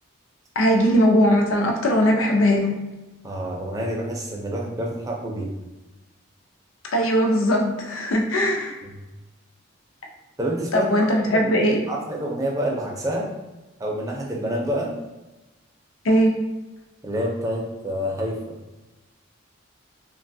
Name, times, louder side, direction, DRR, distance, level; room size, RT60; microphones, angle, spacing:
voice 1, 0.6-2.7 6.9-8.7 10.7-11.8 16.0-16.3, equal, 75° left, 1 dB, 0.5 m, -19 dB
voice 2, 3.2-5.5 8.8-8.9 10.4-13.3 13.8-14.9 17.0-18.5, equal, 15° right, -1 dB, 0.4 m, -28 dB
3.1 x 2.2 x 2.6 m, 1.1 s
head